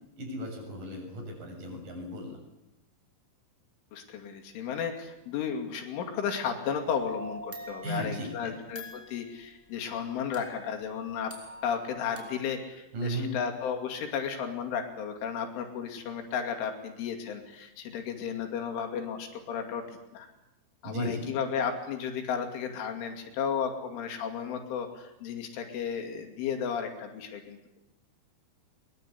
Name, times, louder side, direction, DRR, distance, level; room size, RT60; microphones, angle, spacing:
voice 1, 0.2-2.4 7.8-8.5 12.9-13.4 20.8-21.3, right 1 dB, 45° right, 2 dB, 8.5 m, -35 dB
voice 2, 3.9-11.3 11.6-19.8 20.1-20.3 20.8-27.6, left 7 dB, 90° left, 4 dB, 5.1 m, -34 dB
sound 1, 6.9-9.3 10.3-12.4, equal, 5° left, 4.6 m, -44 dB
23.0 x 22.0 x 8.5 m, 0.93 s
omnidirectional pair, 5.4 m